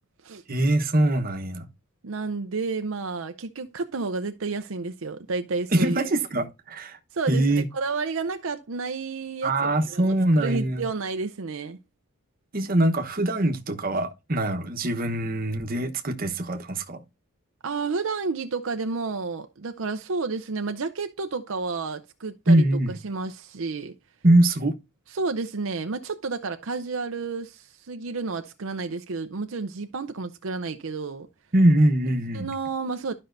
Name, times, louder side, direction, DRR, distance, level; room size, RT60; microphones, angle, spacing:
voice 1, 0.5-1.7 5.7-7.0 7.3-7.6 9.4-10.9 12.5-17.0 22.5-23.0 24.2-24.7 31.5-32.5, right 1 dB, 40° right, 1.1 m, -22 dB
voice 2, 2.0-6.0 7.1-11.8 17.6-22.6 23.0-24.0 25.1-31.3 32.3-33.1, right 4 dB, 70° right, 0.6 m, -31 dB
12.5 x 5.4 x 2.6 m
head